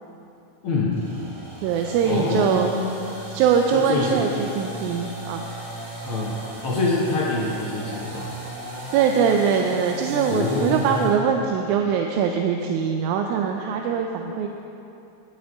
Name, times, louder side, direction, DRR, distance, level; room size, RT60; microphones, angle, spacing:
voice 1, 0.6-1.0 2.0-2.9 3.7-4.2 6.0-8.3 10.3-11.1, left 3 dB, 70° left, -4 dB, 1.3 m, -25 dB
sound 1, 0.9-11.2, right 2 dB, 35° right, 3.2 m, -36 dB
voice 2, 1.6-2.7 3.3-5.5 6.5-6.6 8.9-14.5, right 6 dB, 80° right, 3 dB, 1.9 m, -22 dB
17.0 x 6.4 x 3.5 m, 2.7 s
omnidirectional pair, 3.6 m